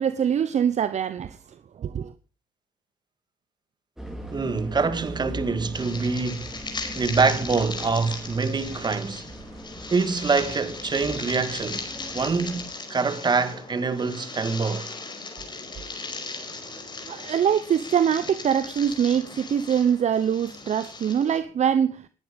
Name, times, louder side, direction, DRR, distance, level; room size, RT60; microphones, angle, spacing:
voice 1, 0.0-1.4 1.8-2.1 17.1-22.0, right 8 dB, 45° right, 1.0 m, -23 dB
sound 1, 4.0-12.7, equal, 5° right, 5.1 m, -40 dB
voice 2, 4.3-9.3 9.9-11.9 12.1-14.9, right 4 dB, 25° right, 2.0 m, -25 dB
sound 2, 5.7-21.4, left 3 dB, 25° left, 5.0 m, -38 dB
19.5 x 10.5 x 5.3 m
cardioid pair, 110°, 17 cm